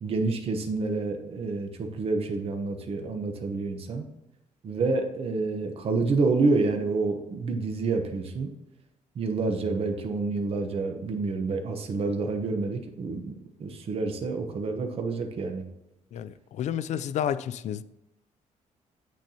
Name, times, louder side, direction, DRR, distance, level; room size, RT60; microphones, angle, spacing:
voice 1, 0.0-4.0 4.6-8.5 9.2-13.3 13.6-15.6, right 3 dB, 50° right, 0.9 m, -28 dB
voice 2, 16.1-17.8, left 9 dB, 60° left, 0.4 m, -30 dB
8.4 x 6.2 x 2.8 m
cardioid pair, 140°, 13 cm